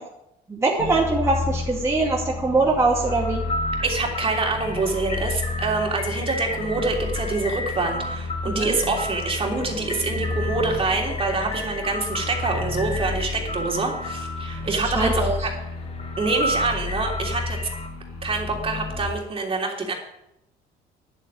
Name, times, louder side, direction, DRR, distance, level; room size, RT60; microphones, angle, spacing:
voice 1, 0.5-3.4 8.5-8.8 14.7-15.4, right 3 dB, 15° right, -4 dB, 2.4 m, -22 dB
sound 1, 0.8-19.1, left 3 dB, 75° left, 5.6 m, -31 dB
sound 2, 3.0-17.9, left 1 dB, 40° left, 1.9 m, -33 dB
voice 2, 3.8-15.5 16.2-17.6 18.2-19.9, right 3 dB, 35° right, 1 dB, 3.3 m, -26 dB
10.5 x 8.2 x 8.9 m, 0.84 s
cardioid pair, 110°, 17 cm